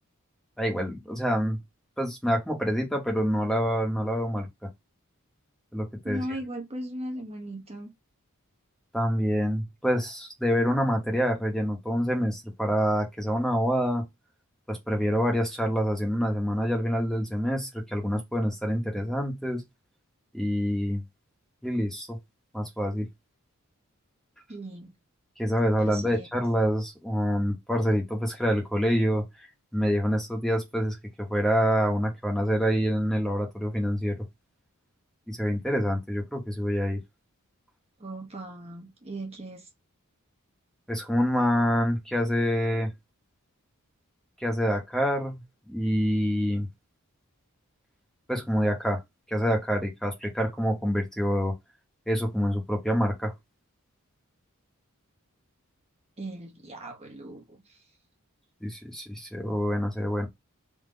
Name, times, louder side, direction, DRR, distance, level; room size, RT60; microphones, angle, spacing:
voice 1, 0.6-1.6 2.0-4.5 5.7-6.2 8.9-14.1 14.7-19.6 20.3-21.0 21.6-22.2 22.5-23.1 25.4-29.2 29.7-34.3 35.3-37.0 40.9-42.9 44.4-45.4 45.7-46.7 48.3-49.0 49.3-51.5 52.1-53.3 58.6-60.3, equal, ahead, 1.1 m, -26 dB
voice 2, 6.0-7.9 24.5-24.9 25.8-26.3 38.0-39.7 56.2-57.8, right 1 dB, 30° right, 0.9 m, -38 dB
3.8 x 2.9 x 3.8 m
head